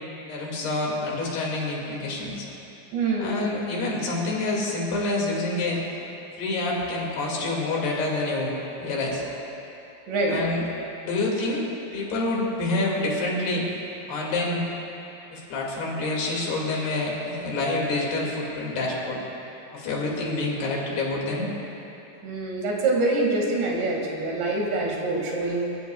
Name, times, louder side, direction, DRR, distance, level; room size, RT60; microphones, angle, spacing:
voice 1, 0.3-2.5 3.2-5.8 6.4-9.2 10.3-10.6 11.0-11.7 11.9-13.7 14.1-14.6 15.3-19.2 19.7-21.5, left 2 dB, 70° left, -3 dB, 4.2 m, -27 dB
voice 2, 2.9-3.4 10.1-10.4 20.2-20.5 22.2-25.6, right 2 dB, 80° right, -2 dB, 4.3 m, -25 dB
27.5 x 14.5 x 2.3 m, 3.0 s
omnidirectional pair, 5.0 m